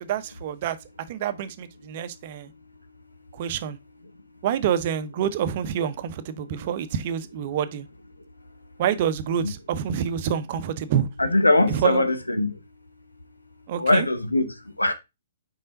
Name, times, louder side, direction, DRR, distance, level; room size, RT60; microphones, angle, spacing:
voice 1, 0.0-0.8 1.1-2.5 3.3-3.8 4.4-7.9 8.8-11.1 11.7-12.0 13.7-14.1, right 9 dB, 45° right, 0.7 m, -27 dB
voice 2, 11.2-12.6 13.7-14.9, left 2 dB, 85° left, 1.0 m, -22 dB
5.5 x 4.9 x 3.9 m
figure-of-eight pair, 120°, 0 cm